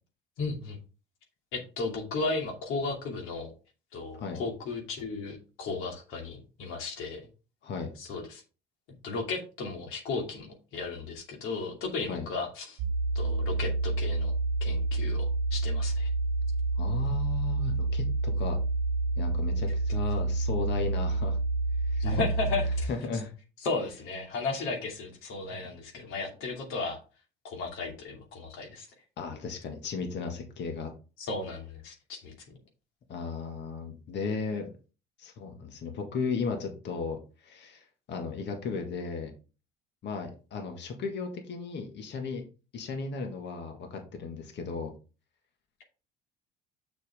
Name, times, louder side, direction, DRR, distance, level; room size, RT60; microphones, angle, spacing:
voice 1, 0.4-0.8 1.5-3.5 3.9-7.2 8.0-8.4 9.0-10.5 10.7-12.8 13.1-14.3 14.6-16.1 22.0-22.9 23.6-27.0 27.4-28.9 31.2-32.3, left 3 dB, 75° left, 2 dB, 2.5 m, -34 dB
sound 1, 12.8-22.9, right 2 dB, 75° right, 0.6 m, -28 dB
voice 2, 16.8-18.6 19.2-21.4 21.8-22.1 22.9-23.3 25.5-26.3 29.2-30.9 33.1-34.7 35.2-39.3 40.0-42.5 42.7-44.9, left 4 dB, 55° left, 4 dB, 1.8 m, -35 dB
6.7 x 6.1 x 3.6 m, 0.34 s
supercardioid pair, 90°, 21 cm